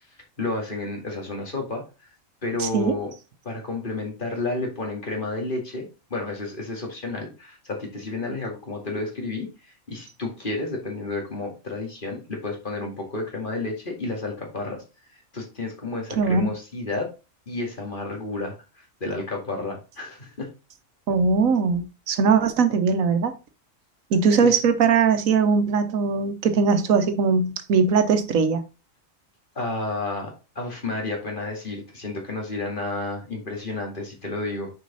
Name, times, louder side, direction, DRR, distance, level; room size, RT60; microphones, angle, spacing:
voice 1, 0.4-1.8 2.4-3.1 3.4-9.5 9.9-14.8 15.3-17.1 17.5-20.5 24.4-24.6 29.6-34.7, left 2 dB, 40° left, 2.3 m, -31 dB
voice 2, 2.6-3.0 16.1-16.5 21.1-23.3 24.1-28.6, right 5 dB, 90° right, 1.3 m, -20 dB
6.3 x 5.1 x 4.0 m
omnidirectional pair, 1.4 m